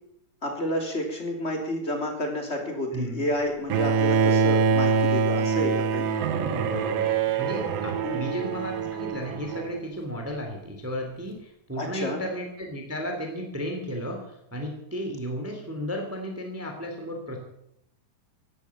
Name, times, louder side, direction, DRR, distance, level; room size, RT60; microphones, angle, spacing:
voice 1, 0.4-6.1 8.0-8.3 11.8-12.2, left 1 dB, 20° left, 2 dB, 3.1 m, -30 dB
voice 2, 2.9-3.3 6.4-17.4, equal, 5° right, 3 dB, 2.5 m, -34 dB
Bowed string instrument, 3.7-9.8, right 5 dB, 80° right, 2.9 m, -24 dB
16.5 x 11.5 x 7.3 m, 0.78 s
omnidirectional pair, 4.1 m